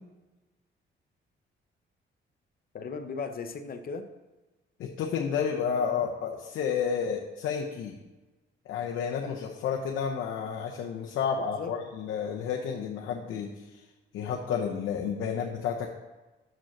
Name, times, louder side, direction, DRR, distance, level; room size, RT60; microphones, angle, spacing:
voice 1, 2.7-4.1 11.4-11.7, left 5 dB, 50° left, 8 dB, 0.8 m, -37 dB
voice 2, 4.8-8.0 8.7-13.8 14.1-15.9, left 7 dB, 80° left, 0 dB, 0.8 m, -31 dB
6.3 x 5.0 x 5.9 m, 1.2 s
cardioid pair, 90°, 20 cm